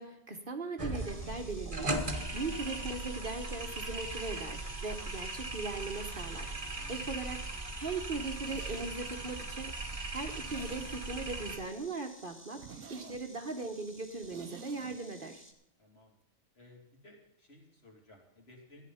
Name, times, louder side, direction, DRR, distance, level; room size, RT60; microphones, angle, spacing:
voice 1, 0.0-6.5 6.9-9.7 10.1-12.6 12.9-15.4, right 3 dB, 45° right, 5 dB, 1.3 m, -39 dB
sound 1, 0.8-11.6, right 2 dB, 25° right, 1.4 m, -38 dB
Insect, 0.9-15.5, equal, 10° left, 1.8 m, -55 dB
voice 2, 6.7-7.1 15.8-16.1 16.5-18.9, left 1 dB, 50° left, 0 dB, 3.2 m, -57 dB
Zipper (clothing), 8.2-11.4 11.7-11.8 12.2-12.3 12.6-15.0 15.2-15.3, right 6 dB, 75° right, 1.1 m, -51 dB
14.0 x 10.0 x 5.6 m, 0.84 s
omnidirectional pair, 1.3 m